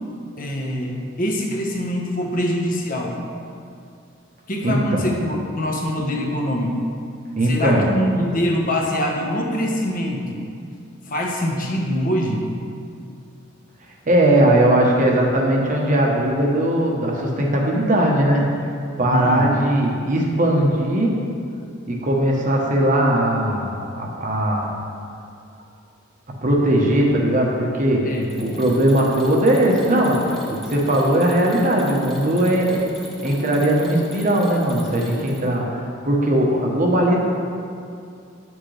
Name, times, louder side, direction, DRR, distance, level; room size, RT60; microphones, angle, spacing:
voice 1, 0.4-3.2 4.5-6.8 7.4-10.4 11.1-12.4 19.0-19.5 28.0-28.6, equal, 45° left, 0 dB, 0.9 m, -24 dB
voice 2, 4.6-5.0 7.4-7.9 14.1-18.5 19.0-21.2 21.9-24.7 26.4-28.1 28.4-32.8 33.2-37.2, right 1 dB, 40° right, -1 dB, 1.0 m, -19 dB
Mechanisms, 28.1-35.6, right 1 dB, ahead, 1.0 m, -37 dB
9.0 x 6.2 x 3.3 m, 2.4 s
head